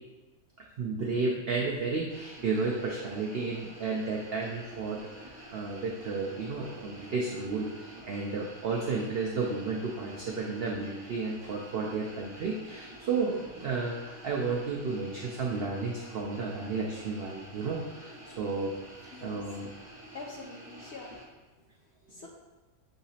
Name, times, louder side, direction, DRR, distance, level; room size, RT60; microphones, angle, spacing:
voice 1, 0.6-18.7 19.0-19.7, right 4 dB, 75° right, -1 dB, 0.5 m, -32 dB
sound 1, 2.1-21.2, right 1 dB, 35° right, 1.7 m, -49 dB
voice 2, 20.1-21.3 22.1-22.3, left 3 dB, 65° left, -1 dB, 0.7 m, -44 dB
6.6 x 2.9 x 2.7 m, 1.2 s
omnidirectional pair, 1.6 m